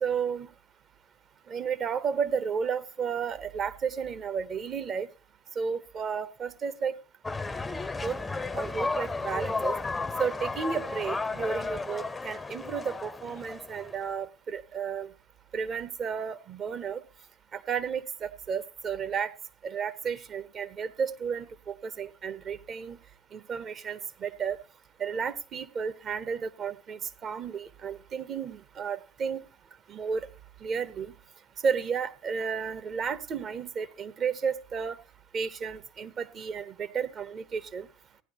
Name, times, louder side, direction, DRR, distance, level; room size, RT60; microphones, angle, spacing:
voice 1, 0.0-0.5 1.5-5.1 5.6-6.9 8.0-8.2 8.5-9.8 10.2-15.1 15.5-17.0 17.5-19.3 19.6-23.0 23.3-24.6 25.0-29.4 29.9-30.3 30.6-31.1 31.6-35.0 35.3-37.9, right 6 dB, 40° right, 14 dB, 0.8 m, -32 dB
sound 1, 7.2-14.1, left 3 dB, 15° left, 0.5 m, -33 dB
15.5 x 10.5 x 2.9 m, 0.31 s
figure-of-eight pair, 65°, 0 cm